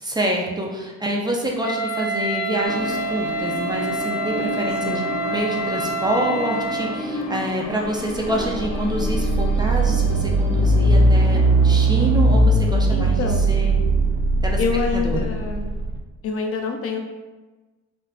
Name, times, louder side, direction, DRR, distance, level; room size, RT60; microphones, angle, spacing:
voice 1, 0.0-13.8 14.4-14.6 14.9-15.3, right 1 dB, 15° right, -1 dB, 0.4 m, -26 dB
Wind instrument woodwind instrument, 1.6-7.0, right 1 dB, 30° left, 1.3 m, -27 dB
sound 1, 2.6-11.5, left 2 dB, 75° left, 0.9 m, -32 dB
voice 2, 4.8-5.2 8.3-8.5 12.9-13.5 14.6-15.7 16.2-17.0, left 4 dB, 50° left, 4 dB, 0.4 m, -26 dB
sound 2, 8.0-16.0, right 2 dB, 70° right, 0.4 m, -19 dB
3.4 x 2.4 x 2.3 m, 1.2 s
cardioid pair, 90°, 30 cm